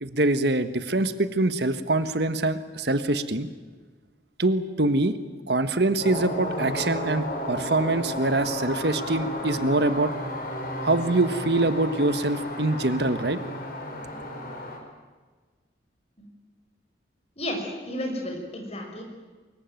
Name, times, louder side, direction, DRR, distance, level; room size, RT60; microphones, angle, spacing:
voice 1, 0.0-3.5 4.4-5.1 5.5-10.1 10.8-13.4, right 2 dB, 65° right, 11 dB, 1.4 m, -24 dB
sound 1, 6.0-14.8, left 1 dB, 50° left, 5.1 m, -33 dB
voice 2, 17.4-19.0, left 1 dB, 35° left, 2 dB, 5.8 m, -32 dB
24.0 x 22.0 x 9.2 m, 1.4 s
head